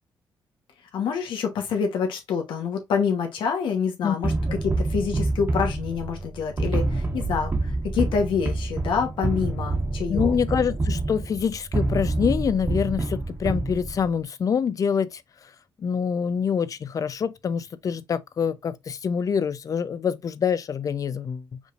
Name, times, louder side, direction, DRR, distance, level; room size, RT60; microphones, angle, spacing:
voice 1, 0.9-4.3 4.8-10.3, left 6 dB, 85° left, 1.1 m, -27 dB
sound 1, 4.2-14.2, right 2 dB, 30° right, 1.3 m, -27 dB
voice 2, 10.1-15.2 15.8-21.6, left 7 dB, 45° left, 0.5 m, -26 dB
5.2 x 3.2 x 2.4 m
cardioid pair, 105°, 8 cm